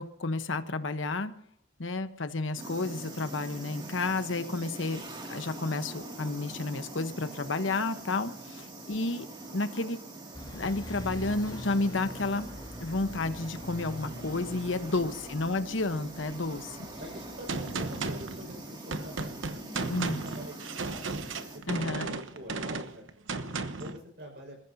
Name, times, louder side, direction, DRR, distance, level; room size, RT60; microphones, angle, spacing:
voice 1, 0.0-1.3 1.8-5.0 5.3-9.2 9.5-10.0 10.5-12.5 12.8-16.8 19.8-20.2 21.7-22.1, left 3 dB, 80° left, 10 dB, 1.1 m, -31 dB
sound 1, 2.6-21.6, right 2 dB, 25° right, 2.4 m, -44 dB
voice 2, 8.2-8.6 14.9-15.3 17.0-19.4 20.2-23.0 23.3-23.5 23.8-24.6, equal, 60° right, 1 dB, 5.5 m, -46 dB
sound 2, 10.3-18.4, left 1 dB, 25° left, 3.6 m, -45 dB
Gunshot gunfire, 17.5-24.0, right 3 dB, 80° right, 1.0 m, -35 dB
28.0 x 14.5 x 2.8 m, 0.63 s
head